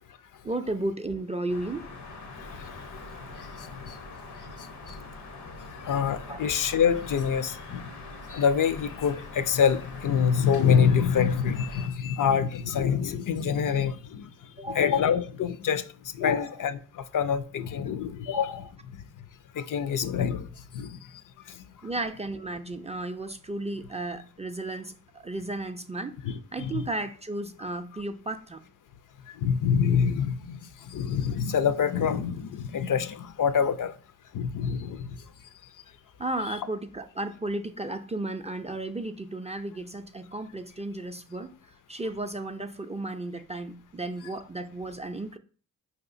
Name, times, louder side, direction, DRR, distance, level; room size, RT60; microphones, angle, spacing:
voice 1, 0.4-1.9 4.9-5.0 5.5-5.6 6.3-6.4 14.6-15.0 16.2-16.6 18.3-18.6 21.8-26.2 26.5-28.6 36.2-45.4, right 2 dB, 20° right, 0.4 m, -34 dB
sound 1, 1.5-11.9, left 3 dB, 80° left, 0.9 m, -43 dB
voice 2, 5.9-7.8 8.3-14.3 14.7-15.8 16.2-18.6 19.6-20.5 20.7-21.0 26.6-26.8 29.4-30.6 30.9-33.9 34.3-35.1, left 7 dB, 55° left, 0.4 m, -25 dB
4.7 x 2.8 x 2.5 m
supercardioid pair, 45°, 38 cm